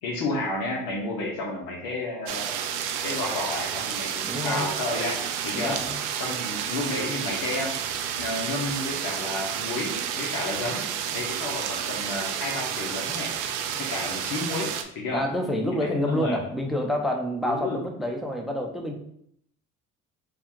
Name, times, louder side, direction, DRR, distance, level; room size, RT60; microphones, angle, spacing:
voice 1, 0.0-2.6 3.0-5.8 6.2-10.8 11.1-13.3 13.8-15.3 15.7-16.4 17.4-17.8, left 2 dB, 70° left, -1 dB, 1.0 m, -31 dB
sound 1, 2.3-14.8, right 8 dB, 90° right, 0.5 m, -31 dB
voice 2, 4.2-4.7 5.5-6.0 15.1-18.9, left 1 dB, ahead, 3 dB, 0.7 m, -28 dB
3.4 x 2.4 x 4.5 m, 0.70 s
supercardioid pair, 70°, 34 cm